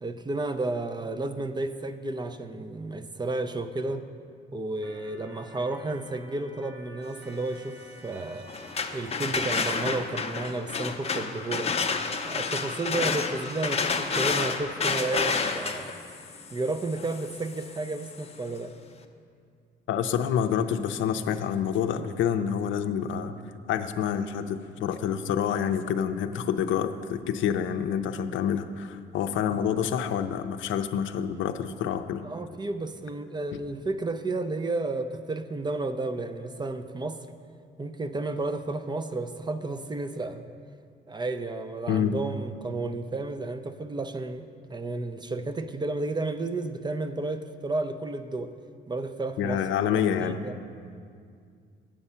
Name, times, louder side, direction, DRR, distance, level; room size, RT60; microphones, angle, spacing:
voice 1, 0.0-4.1 4.5-8.5 8.9-11.9 12.3-15.9 16.5-18.7 32.2-37.3 37.8-40.4 41.1-48.5 48.9-49.6 49.9-50.6, right 2 dB, 20° right, 9 dB, 0.4 m, -32 dB
Organ, 4.8-10.5, right 1 dB, 65° right, 1.6 m, -50 dB
sound 1, 8.5-18.3, left 5 dB, 30° left, 0.6 m, -30 dB
voice 2, 19.9-23.3 23.7-32.2 41.9-42.1 49.4-50.4, left 8 dB, 75° left, 8 dB, 0.5 m, -27 dB
8.8 x 7.1 x 5.6 m, 2.3 s
cardioid pair, 90°, 20 cm